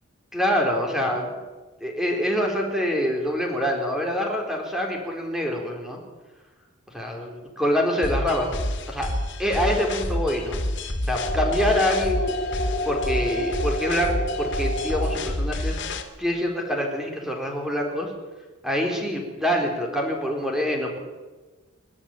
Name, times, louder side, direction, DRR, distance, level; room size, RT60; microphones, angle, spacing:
voice 1, 0.3-1.3 1.8-6.0 6.9-7.3 7.6-8.6 8.9-9.1 9.4-10.6 11.1-12.4 12.9-18.1 18.6-21.0, equal, ahead, 1 dB, 3.9 m, -25 dB
sound 1, 8.0-16.0, left 1 dB, 60° left, 2.9 m, -29 dB
sound 2, 11.1-15.1, equal, 35° left, 4.1 m, -30 dB
28.0 x 12.5 x 9.0 m, 1.3 s
head